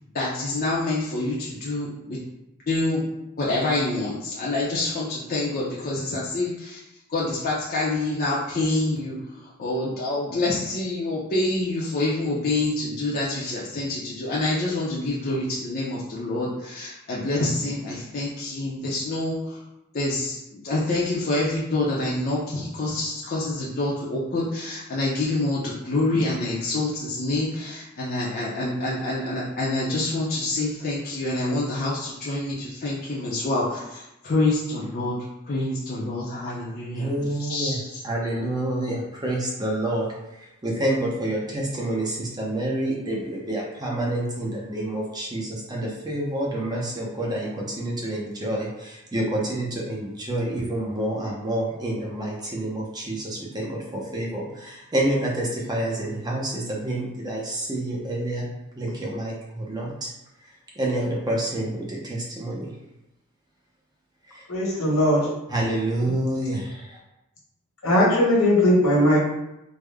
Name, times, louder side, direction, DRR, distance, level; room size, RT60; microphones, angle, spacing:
voice 1, 0.1-2.2 2.7-3.0 3.4-6.8 7.1-19.6 19.9-35.2 35.5-38.0, left 2 dB, 45° left, -6 dB, 0.6 m, -27 dB
voice 2, 36.9-37.8 38.0-40.0 40.6-58.5 58.8-60.1 60.8-62.6 65.5-66.7, right 1 dB, 20° right, -3 dB, 0.6 m, -28 dB
voice 3, 64.5-65.2 67.8-69.3, left 1 dB, 80° left, -4 dB, 1.3 m, -19 dB
3.5 x 2.1 x 3.4 m, 0.89 s
head